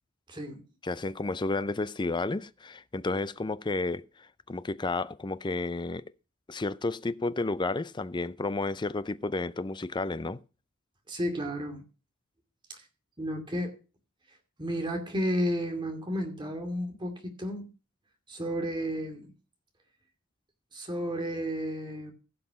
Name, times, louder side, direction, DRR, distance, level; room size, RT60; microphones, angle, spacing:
voice 1, 0.3-0.6 11.1-11.8 12.7-12.8 13.2-13.7 14.6-17.7 18.3-19.3 20.7-22.1, equal, 20° right, 2.3 m, -32 dB
voice 2, 0.8-6.1 6.5-10.4, left 3 dB, 20° left, 0.5 m, -32 dB
15.5 x 5.8 x 5.8 m
head